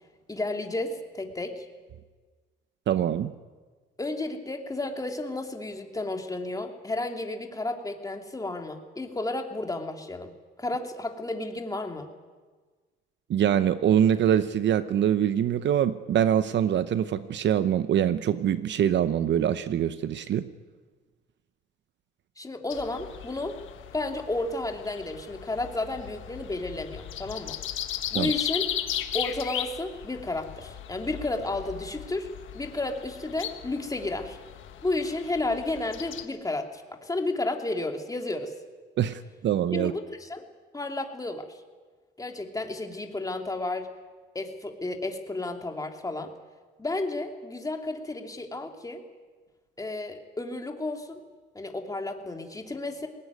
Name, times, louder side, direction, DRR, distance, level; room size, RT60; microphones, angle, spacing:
voice 1, 0.3-1.7 4.0-10.3 10.6-12.1 22.4-23.6 23.9-27.6 28.1-28.7 29.1-34.4 34.8-38.5 39.7-40.4 40.7-41.5 42.2-43.9 44.3-46.3 46.8-49.0 49.8-51.2 51.5-53.1, left 2 dB, 15° left, 3 dB, 2.8 m, -32 dB
voice 2, 2.9-3.3 13.3-20.5 28.1-28.3 39.0-39.9, right 10 dB, 65° right, 13 dB, 0.8 m, -24 dB
sound 1, 22.7-36.2, left 11 dB, 80° left, 1.6 m, -37 dB
20.0 x 18.5 x 9.5 m, 1.4 s
cardioid pair, 90°, 20 cm